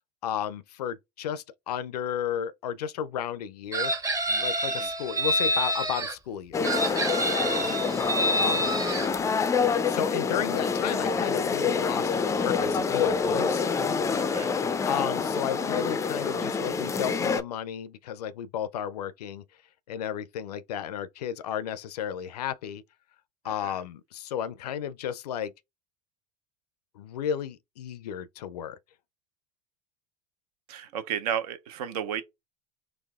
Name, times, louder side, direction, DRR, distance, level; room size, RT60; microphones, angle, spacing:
voice 1, 0.2-3.9 4.3-6.8 7.6-7.8 8.4-8.7 9.9-13.7 14.8-19.4 19.9-22.8 23.4-25.5 26.9-28.8, left 9 dB, 75° left, 0.4 m, -33 dB
Chicken rooster, 3.7-6.1 6.6-9.1, right 1 dB, 15° right, 0.7 m, -27 dB
sound 1, 6.5-17.4, left 5 dB, 15° left, 0.3 m, -27 dB
voice 2, 14.2-14.5 23.5-23.8 30.7-32.2, right 9 dB, 70° right, 0.7 m, -33 dB
4.1 x 2.3 x 2.3 m
hypercardioid pair, 85°, 20 cm